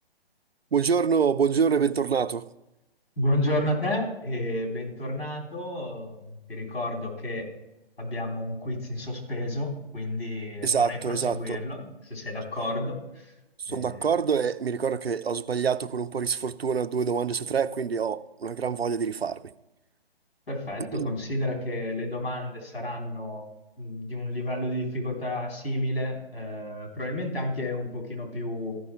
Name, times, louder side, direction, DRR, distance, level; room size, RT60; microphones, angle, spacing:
voice 1, 0.7-2.5 10.6-11.6 13.6-19.5 20.9-21.2, right 6 dB, 75° right, 0.6 m, -26 dB
voice 2, 3.2-7.5 8.0-13.3 13.7-14.0 20.5-23.5 23.8-28.8, left 1 dB, 70° left, 3.6 m, -31 dB
14.0 x 5.4 x 4.5 m
figure-of-eight pair, 135°, 31 cm